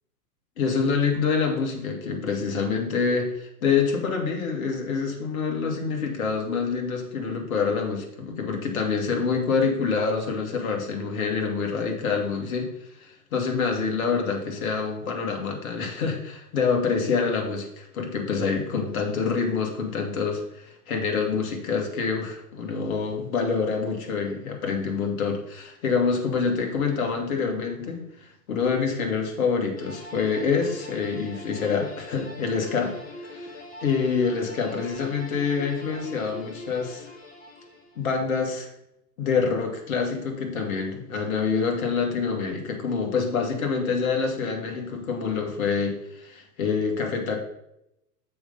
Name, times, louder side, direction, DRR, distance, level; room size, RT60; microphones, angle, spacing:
voice 1, 0.6-37.1 38.0-38.7 39.2-47.4, left 5 dB, 55° left, 3 dB, 2.3 m, -26 dB
sound 1, 29.8-38.1, left 1 dB, 15° left, 1.7 m, -43 dB
6.8 x 5.5 x 5.5 m, 0.83 s
hypercardioid pair, 120°, 49 cm